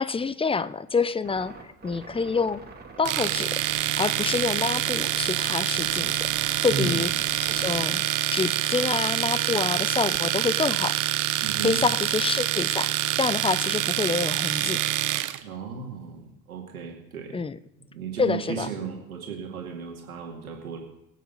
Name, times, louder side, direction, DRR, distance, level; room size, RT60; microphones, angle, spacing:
voice 1, 0.0-2.6 3.0-3.6 4.0-7.1 7.5-8.0 8.3-11.0 11.6-14.8 17.3-17.6 18.2-18.7, left 4 dB, 15° left, 17 dB, 0.6 m, -27 dB
sound 1, 1.2-7.9, right 4 dB, 20° right, 2.7 m, -44 dB
Domestic sounds home sounds, 3.0-15.4, right 13 dB, 45° right, 0.8 m, -26 dB
voice 2, 6.7-7.0 11.4-11.9 15.4-17.4 17.9-20.8, right 5 dB, 85° right, 1 dB, 2.4 m, -34 dB
23.5 x 8.3 x 4.0 m, 0.83 s
figure-of-eight pair, 55°, 42 cm